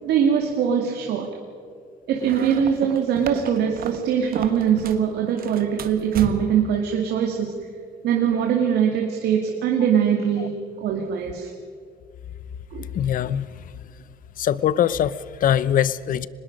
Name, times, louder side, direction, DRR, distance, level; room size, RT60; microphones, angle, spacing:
voice 1, 0.0-1.3 2.1-7.6 8.0-11.5 12.7-12.9, right 8 dB, 75° right, 2 dB, 2.3 m, -22 dB
sound 1, 2.2-5.1 5.4-6.7, right 8 dB, 60° right, 1.5 m, -34 dB
voice 2, 12.8-14.0 14.4-16.3, left 10 dB, 55° left, 18 dB, 0.8 m, -23 dB
24.5 x 20.5 x 5.4 m, 2.4 s
cardioid pair, 110°, 17 cm